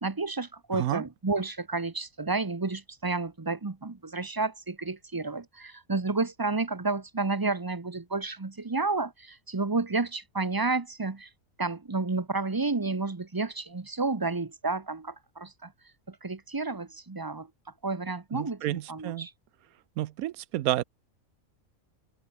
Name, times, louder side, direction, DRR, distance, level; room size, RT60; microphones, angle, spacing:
voice 1, 0.0-11.3 11.6-15.7 16.1-17.5 17.8-19.3, right 3 dB, 20° right, 0.7 m, -31 dB
voice 2, 0.7-1.0 18.3-19.3 20.0-20.8, right 14 dB, 85° right, 1.1 m, -30 dB
open air
omnidirectional pair, 1.5 m